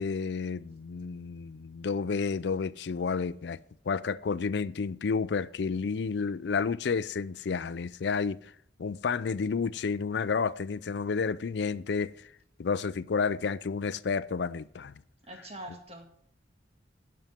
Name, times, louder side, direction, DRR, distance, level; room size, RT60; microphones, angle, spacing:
voice 1, 0.0-3.6 3.9-8.5 8.8-12.3 12.6-14.9, left 5 dB, 70° left, 0.4 m, -31 dB
voice 2, 15.3-16.1, right 1 dB, 35° right, 1.9 m, -43 dB
11.0 x 5.7 x 7.4 m
head